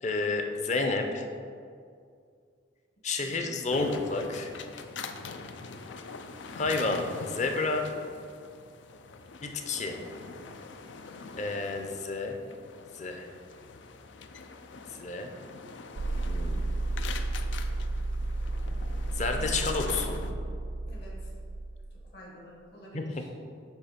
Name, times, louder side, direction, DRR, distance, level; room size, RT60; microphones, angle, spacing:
voice 1, 0.0-1.2 3.0-4.5 6.5-7.9 9.4-10.0 11.4-12.4 12.9-13.3 15.0-15.3 16.3-16.6 19.1-20.2 22.9-23.0, left 3 dB, 40° left, 4 dB, 0.6 m, -30 dB
voice 2, 3.2-3.5 20.8-21.3 22.1-23.3, equal, 65° left, -3 dB, 1.5 m, -49 dB
sound 1, 3.7-20.3, left 4 dB, 90° left, 0.5 m, -43 dB
sound 2, 16.0-22.1, right 2 dB, 60° right, 0.4 m, -32 dB
8.1 x 3.2 x 5.8 m, 2.2 s
head